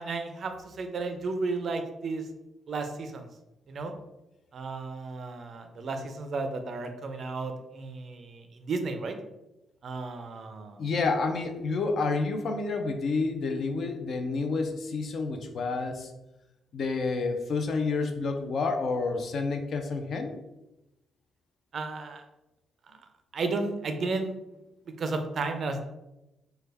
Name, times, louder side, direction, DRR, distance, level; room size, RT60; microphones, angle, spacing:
voice 1, 0.0-2.3 2.7-3.3 3.7-3.9 4.5-9.1 9.8-10.9 21.7-22.2 22.9-23.0 23.3-24.4 25.0-25.8, right 3 dB, 45° right, 6 dB, 0.4 m, -33 dB
voice 2, 10.8-16.1 16.7-20.4, left 3 dB, 50° left, 5 dB, 0.4 m, -29 dB
3.2 x 2.2 x 3.3 m, 0.94 s
cardioid pair, 145°, 0 cm